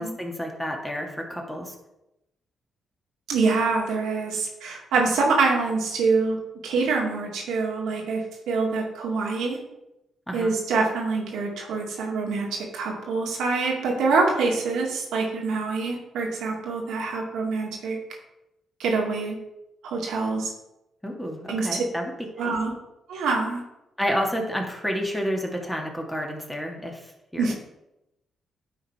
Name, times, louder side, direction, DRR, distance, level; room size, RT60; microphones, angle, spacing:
voice 1, 0.0-1.7 10.3-10.5 21.0-22.1 22.4-22.6 24.0-27.5, equal, 5° left, 1 dB, 1.9 m, -30 dB
voice 2, 3.3-6.4 6.6-9.6 10.3-18.0 18.8-19.4 19.8-20.5 21.5-21.7 22.4-22.7 23.1-23.6 27.4-27.5, right 4 dB, 75° right, -1 dB, 2.0 m, -25 dB
10.0 x 3.9 x 4.8 m, 0.91 s
supercardioid pair, 50°, 0 cm